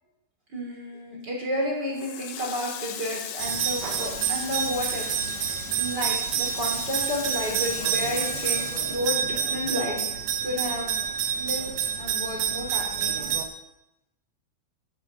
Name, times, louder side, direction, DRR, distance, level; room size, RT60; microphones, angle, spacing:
voice 1, 0.5-5.0 5.4-10.1 10.4-10.9 11.4-11.7 12.0-13.3, equal, 30° right, -1 dB, 3.2 m, -31 dB
Water tap faucet, 1.9-9.8 10.1-11.4, left 9 dB, 70° left, 2.3 m, -38 dB
sound 1, 3.4-13.5, right 8 dB, 80° right, 1.4 m, -28 dB
12.0 x 8.8 x 6.5 m, 0.89 s
omnidirectional pair, 4.3 m